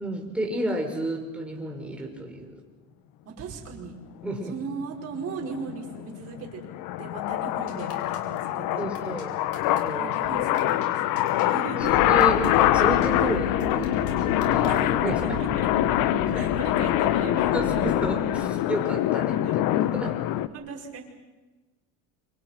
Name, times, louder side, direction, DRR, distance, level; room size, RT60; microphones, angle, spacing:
voice 1, 0.0-2.5 4.2-4.5 8.8-9.3 9.6-10.2 11.8-15.2 16.3-16.6 17.5-19.5 19.7-20.2, right 1 dB, 5° right, 0 dB, 5.4 m, -31 dB
voice 2, 3.2-4.0 4.4-6.6 7.0-9.3 10.0-12.0 14.6-14.9 15.4-15.7 16.3-17.6 19.4-19.6 20.5-21.0, right 5 dB, 40° right, 0 dB, 6.0 m, -38 dB
sound 1, 5.1-20.5, left 13 dB, 60° left, 1.3 m, -25 dB
sound 2, 7.7-8.4 8.9-9.2 9.5-9.8 10.1-10.2 10.6-10.9 11.2-11.5 11.9-12.0 12.2-12.5 12.8-13.1 13.6-14.8, left 4 dB, 35° left, 6.2 m, -46 dB
sound 3, 11.8-18.4, left 8 dB, 80° left, 3.2 m, -30 dB
28.5 x 26.5 x 6.1 m, 1.2 s
supercardioid pair, 125°, 38 cm